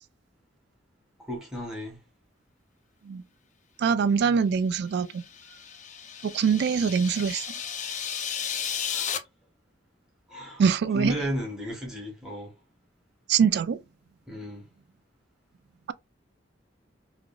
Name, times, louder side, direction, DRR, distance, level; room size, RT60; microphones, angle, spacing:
voice 1, 1.2-2.0 8.9-9.1 10.3-10.6 10.9-12.5 14.3-14.7, equal, 5° right, 1.2 m, -34 dB
voice 2, 3.8-5.2 6.2-7.5 10.6-11.2 13.3-13.8, right 6 dB, 60° right, 0.3 m, -23 dB
sound 1, 5.0-9.2, left 8 dB, 40° left, 0.5 m, -34 dB
3.1 x 2.5 x 2.3 m
head